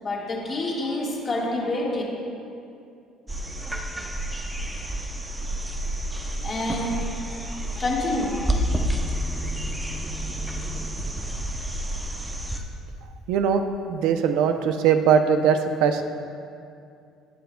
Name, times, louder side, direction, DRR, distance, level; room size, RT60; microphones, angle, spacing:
voice 1, 0.0-2.0 6.2-8.5, left 2 dB, 25° left, -3 dB, 1.6 m, -28 dB
sound 1, 3.3-12.6 14.7-14.8, right 1 dB, 10° right, 0.6 m, -29 dB
voice 2, 13.3-13.6 13.9-16.0, right 7 dB, 75° right, 7 dB, 0.5 m, -20 dB
19.5 x 6.8 x 2.2 m, 2.5 s
cardioid pair, 150°, 0 cm